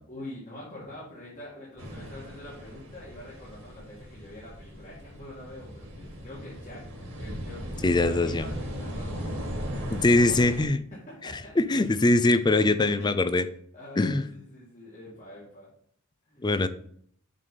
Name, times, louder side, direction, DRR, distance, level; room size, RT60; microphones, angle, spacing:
voice 1, 0.1-6.8 7.2-10.3 10.9-11.5 12.4-13.1 13.7-15.7 16.3-16.5, left 1 dB, 40° left, -7 dB, 2.1 m, -45 dB
sound 1, 1.8-10.6, equal, 70° right, 2.1 m, -37 dB
voice 2, 7.8-8.5 9.9-10.8 11.6-13.5 14.0-14.2 16.4-16.7, left 2 dB, 20° left, 12 dB, 0.4 m, -22 dB
7.4 x 4.0 x 5.0 m, 0.63 s
head